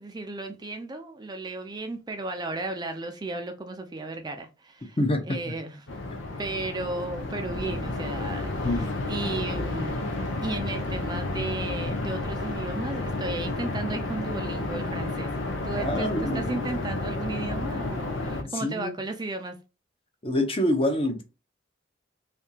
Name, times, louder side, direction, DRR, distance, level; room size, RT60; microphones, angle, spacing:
voice 1, 0.0-5.0 5.3-5.8 6.4-10.1 10.4-15.3 15.6-19.6, right 2 dB, 20° right, 0.4 m, -34 dB
voice 2, 5.0-5.4 8.6-9.0 15.8-16.4 18.4-18.9 20.2-21.2, left 1 dB, 30° left, 0.8 m, -26 dB
sound 1, 5.9-18.4, left 2 dB, 85° left, 0.8 m, -31 dB
3.4 x 2.8 x 2.8 m
head